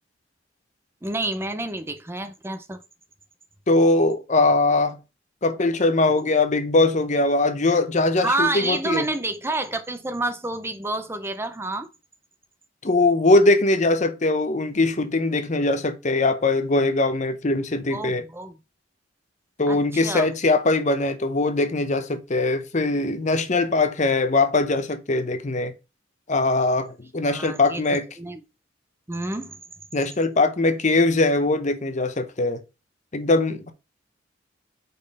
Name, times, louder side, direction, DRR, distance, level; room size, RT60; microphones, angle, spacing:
voice 1, 1.0-2.8 8.2-11.9 17.9-18.5 19.7-20.3 27.2-27.8 28.2-28.4 29.1-29.6, right 2 dB, 15° right, 0.6 m, -28 dB
voice 2, 3.7-5.0 5.4-9.1 12.8-18.2 19.6-25.7 26.3-28.0 29.9-32.6 33.1-33.7, left 2 dB, 40° left, 0.8 m, -21 dB
5.3 x 4.3 x 5.3 m
head